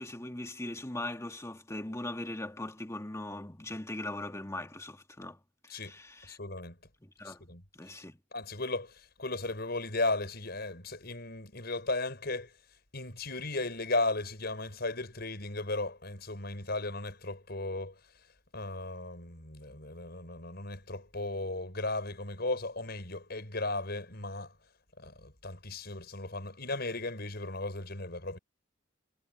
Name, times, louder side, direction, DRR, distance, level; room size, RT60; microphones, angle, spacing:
voice 1, 0.0-5.4 5.7-6.4 7.0-7.4 7.7-8.2, left 1 dB, 15° left, 1.7 m, -40 dB
voice 2, 6.2-6.8 7.2-7.6 8.3-12.5 12.9-18.0 18.5-24.5 25.0-28.4, left 2 dB, 55° left, 6.1 m, -36 dB
head